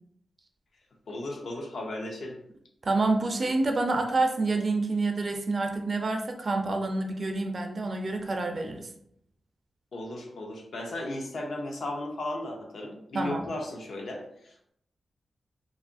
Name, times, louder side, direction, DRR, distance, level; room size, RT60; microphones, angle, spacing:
voice 1, 1.1-2.4 9.9-14.7, left 1 dB, 70° left, 1 dB, 0.6 m, -35 dB
voice 2, 2.8-8.9 13.1-13.5, right 3 dB, 45° right, 4 dB, 0.3 m, -28 dB
2.9 x 2.3 x 2.4 m, 0.70 s
wide cardioid pair, 130°, 0 cm